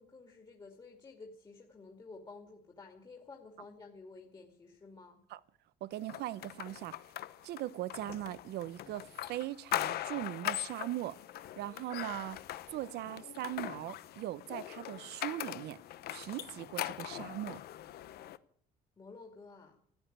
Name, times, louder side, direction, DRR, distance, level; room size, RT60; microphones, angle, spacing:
voice 1, 0.0-5.2 19.0-19.8, left 3 dB, 25° left, 2.4 m, -52 dB
voice 2, 5.8-7.0 7.4-11.2 11.6-12.4 12.7-15.8 16.1-17.6, right 14 dB, 75° right, 0.8 m, -40 dB
sound 1, 6.1-18.4, left 13 dB, 70° left, 0.8 m, -41 dB
14.5 x 9.0 x 9.9 m
cardioid pair, 110°, 17 cm